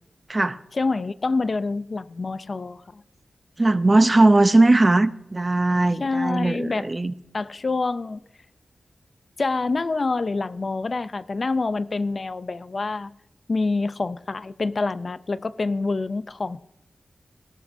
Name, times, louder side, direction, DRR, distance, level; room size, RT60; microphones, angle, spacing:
voice 1, 0.7-3.0 6.0-6.9 7.3-8.2 9.4-13.1 13.5-16.6, left 3 dB, 50° left, 0.5 m, -26 dB
voice 2, 3.6-7.1, right 2 dB, 30° right, 0.7 m, -19 dB
18.5 x 18.0 x 2.7 m
wide cardioid pair, 75°, 0 cm